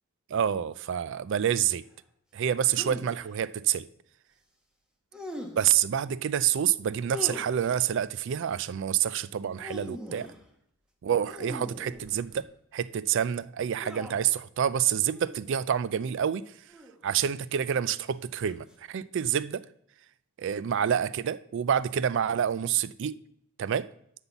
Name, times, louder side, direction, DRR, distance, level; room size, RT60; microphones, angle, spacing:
voice 1, 0.3-1.8 2.3-3.9 5.6-10.3 11.0-12.4 12.7-16.5 17.0-19.6 20.4-23.2 23.6-23.9, right 9 dB, 55° right, 0.3 m, -27 dB
sound 1, 2.7-3.3 5.1-5.8 7.1-7.9 9.4-10.4 11.3-12.4 13.8-14.4 15.1-15.4 16.7-17.2 18.4-18.7, left 1 dB, 5° right, 1.1 m, -41 dB
7.9 x 5.5 x 7.1 m
head